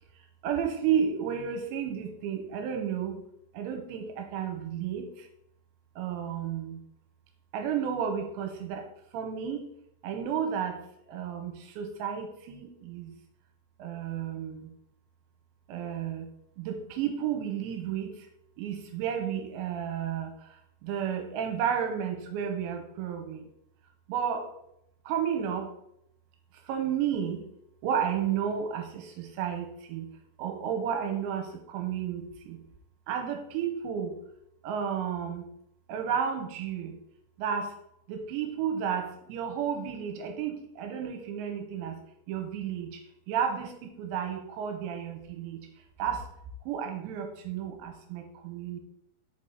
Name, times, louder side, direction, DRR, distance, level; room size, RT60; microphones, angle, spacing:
voice 1, 0.4-3.2 3.5-5.3 6.0-6.8 7.5-8.9 9.1-9.7 10.0-10.8 11.1-13.1 13.8-14.7 15.7-16.3 16.6-18.3 18.6-23.5 24.1-24.5 25.1-25.7 26.6-27.4 27.8-30.1 30.4-32.6 33.1-34.2 34.6-35.5 35.9-37.0 37.4-37.7 38.1-42.0 42.3-45.6 46.0-46.3 46.7-48.8, right 8 dB, 85° right, 5 dB, 2.8 m, -32 dB
6.3 x 4.8 x 4.3 m, 0.76 s
omnidirectional pair, 5.5 m